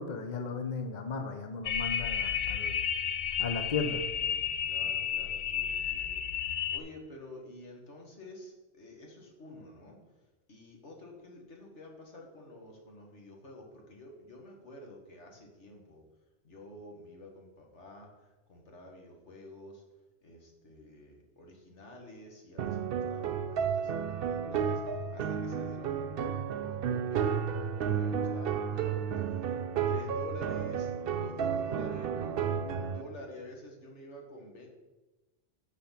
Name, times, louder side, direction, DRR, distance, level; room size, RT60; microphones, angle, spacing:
voice 1, 0.0-2.7 3.4-4.0, left 4 dB, 45° left, 6 dB, 0.9 m, -35 dB
sound 1, 1.6-6.8, left 8 dB, 60° left, 0.5 m, -32 dB
voice 2, 4.6-10.0 10.5-16.0 16.4-19.8 20.2-24.8 25.1-29.0 29.3-29.5 29.9-34.7, left 1 dB, 80° left, 1 dB, 2.0 m, -49 dB
sound 2, 22.6-33.0, right 7 dB, 60° right, 0.7 m, -32 dB
9.2 x 6.3 x 5.8 m, 1.1 s
omnidirectional pair, 1.2 m